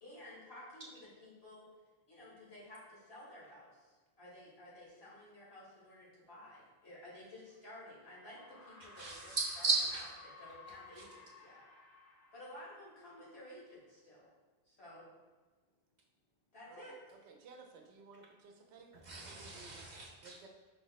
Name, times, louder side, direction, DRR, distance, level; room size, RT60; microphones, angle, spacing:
voice 1, 0.0-1.6 2.1-9.7 10.4-11.6 12.3-14.3 14.7-15.1 16.5-17.2, left 1 dB, 70° left, -7 dB, 1.8 m, -53 dB
sound 1, 7.5-7.6 8.3-13.5, left 3 dB, 25° left, 0.3 m, -57 dB
voice 2, 8.9-10.0 11.0-11.1 18.9-20.4, right 3 dB, 50° right, -3 dB, 0.7 m, -36 dB
voice 3, 17.3-18.9 19.2-19.8 20.2-20.5, right 4 dB, 85° right, 3 dB, 0.9 m, -56 dB
5.2 x 2.0 x 3.9 m, 1.3 s
omnidirectional pair, 1.1 m